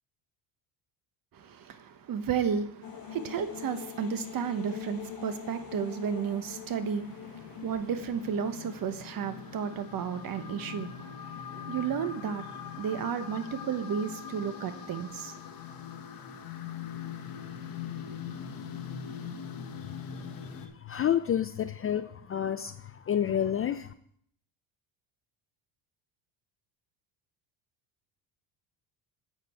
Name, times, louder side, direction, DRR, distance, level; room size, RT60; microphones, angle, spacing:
voice 1, 1.3-15.3, right 7 dB, 45° right, 1.1 m, -33 dB
sound 1, 2.8-20.7, left 8 dB, 45° left, 1.4 m, -42 dB
voice 2, 20.8-22.7 23.1-23.9, left 9 dB, 30° left, 0.4 m, -29 dB
8.6 x 8.0 x 4.4 m
cardioid pair, 110°, 48 cm